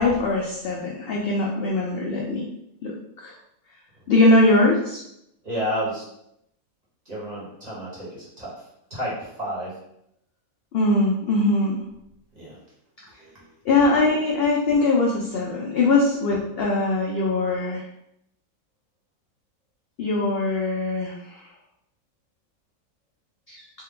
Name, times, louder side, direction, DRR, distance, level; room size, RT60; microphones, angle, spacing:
voice 1, 0.0-2.4 2.8-3.3 4.1-5.0 10.7-11.8 13.7-17.8 20.0-21.4 23.5-23.6, left 2 dB, 75° left, -2 dB, 0.5 m, -21 dB
voice 2, 5.4-6.0 7.1-8.5 8.9-9.8 12.3-12.6 13.2-13.5, equal, 30° right, -7 dB, 1.1 m, -31 dB
3.2 x 2.2 x 3.6 m, 0.78 s
omnidirectional pair, 1.6 m